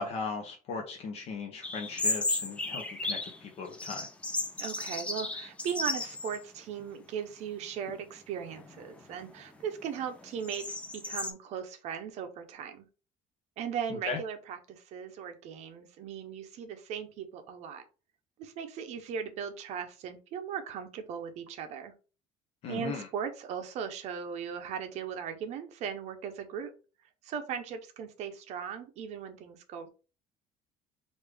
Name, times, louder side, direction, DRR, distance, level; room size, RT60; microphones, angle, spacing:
voice 1, 0.0-4.1 13.9-14.2 22.6-23.1, left 4 dB, 45° left, 2 dB, 0.7 m, -37 dB
sound 1, 1.6-3.4 3.7-6.4 6.8-6.9 7.6-8.0 8.5-11.3, left 2 dB, 10° left, 0.3 m, -35 dB
voice 2, 4.6-12.9 13.6-17.8 18.4-21.9 22.7-26.7 27.2-29.9, right 7 dB, 50° right, 8 dB, 0.6 m, -38 dB
3.2 x 2.6 x 3.3 m, 0.34 s
cardioid pair, 175°, 15 cm